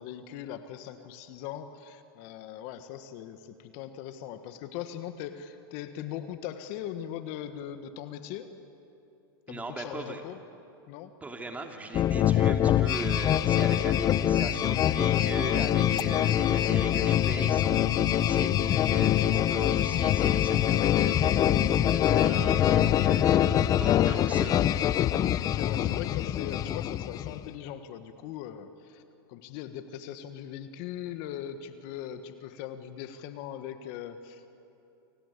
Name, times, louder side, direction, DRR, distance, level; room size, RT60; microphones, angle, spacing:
voice 1, 0.0-8.5 9.5-10.4 10.9-11.1 25.4-29.0 29.3-34.5, left 10 dB, 50° left, 9 dB, 1.6 m, -40 dB
voice 2, 9.5-10.2 11.2-21.6 21.9-24.7, right 2 dB, 10° right, 3 dB, 2.8 m, -39 dB
sound 1, 11.9-27.5, left 11 dB, 30° left, 0.7 m, -24 dB
29.5 x 24.5 x 8.3 m, 2.8 s
hypercardioid pair, 125°, 13 cm